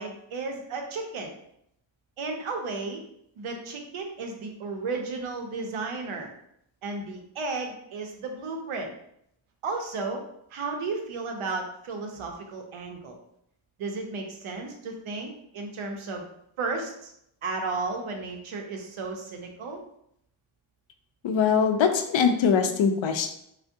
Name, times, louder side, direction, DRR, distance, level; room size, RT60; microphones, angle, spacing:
voice 1, 0.0-1.3 2.2-3.0 3.4-6.3 6.8-8.9 9.6-10.2 10.5-13.2 13.8-16.2 16.6-17.1 17.4-19.8, right 3 dB, 85° right, 3 dB, 0.7 m, -33 dB
voice 2, 21.2-23.3, left 6 dB, 70° left, 6 dB, 0.5 m, -22 dB
3.3 x 2.1 x 2.6 m, 0.74 s
wide cardioid pair, 95°, 48 cm